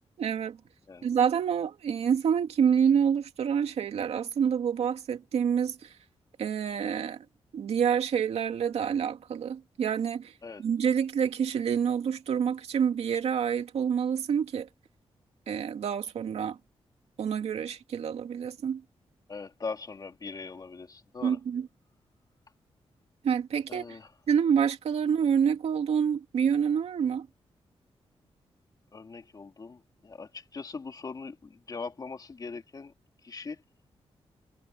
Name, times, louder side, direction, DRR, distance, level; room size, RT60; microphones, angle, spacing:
voice 1, 0.2-0.6 1.0-5.9 6.4-7.2 7.5-10.3 10.6-14.7 15.5-16.6 17.2-18.8 21.2-21.7 23.2-24.0 24.3-27.3, right 7 dB, 85° right, 2.5 m, -27 dB
voice 2, 19.3-21.4 23.7-24.1 28.9-32.9 33.2-33.6, left 4 dB, 40° left, 2.7 m, -41 dB
wide cardioid pair, 125°, 10 cm